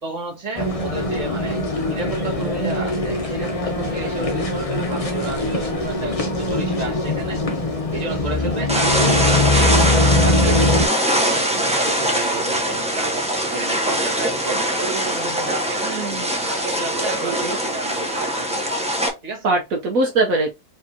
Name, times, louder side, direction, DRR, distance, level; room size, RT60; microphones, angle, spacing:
voice 1, 0.0-7.4 7.9-13.1 13.5-16.1 16.5-18.8 19.2-19.5, right 3 dB, 25° right, 1.5 m, -32 dB
sound 1, 0.6-10.9, left 2 dB, 25° left, 0.9 m, -22 dB
sound 2, 8.7-19.1, right 1 dB, 5° right, 0.8 m, -22 dB
voice 2, 15.8-16.3 17.2-17.6 19.4-20.5, right 2 dB, 65° right, 1.2 m, -22 dB
4.7 x 3.5 x 2.8 m
omnidirectional pair, 1.6 m